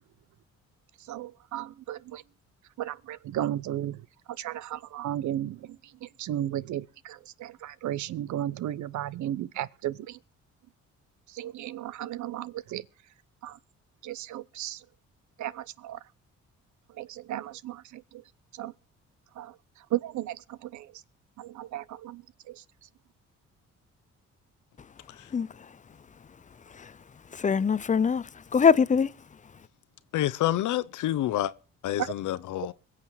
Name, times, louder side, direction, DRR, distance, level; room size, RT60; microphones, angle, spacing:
voice 1, 1.0-2.2 2.8-10.2 11.3-12.9 13.4-13.6 14.0-14.8 15.4-16.0 16.9-18.2 18.5-18.7 19.3-21.0 21.4-22.6 32.0-32.1, right 12 dB, 75° right, 0.7 m, -35 dB
voice 2, 25.3-25.7 26.7-26.9 27.3-29.1, left 6 dB, 25° left, 0.6 m, -23 dB
voice 3, 30.1-31.5 31.8-32.7, left 13 dB, 80° left, 0.9 m, -28 dB
22.0 x 7.4 x 4.7 m
cardioid pair, 90°, 30 cm